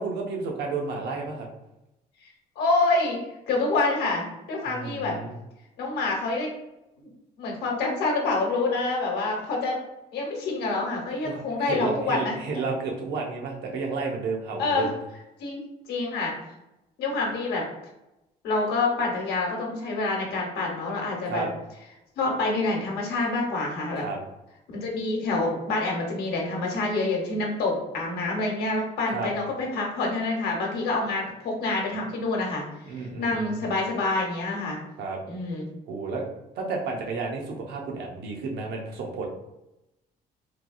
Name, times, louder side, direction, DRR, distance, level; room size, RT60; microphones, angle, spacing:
voice 1, 0.0-1.5 4.7-5.3 11.2-14.9 21.3-21.5 24.0-24.2 29.1-29.3 32.9-33.6 35.0-35.2 35.9-36.2 36.5-39.3, right 4 dB, 75° right, 0 dB, 0.7 m, -31 dB
voice 2, 2.6-3.2 3.5-5.2 5.8-6.5 7.4-9.8 10.1-12.3 14.6-14.9 15.4-15.6 15.9-16.4 17.0-17.7 18.4-21.5 22.2-24.0 24.7-32.6 33.2-34.8 35.3-35.7, left 3 dB, 70° left, 0 dB, 0.9 m, -27 dB
3.2 x 2.3 x 2.5 m, 0.92 s
cardioid pair, 110°, 17 cm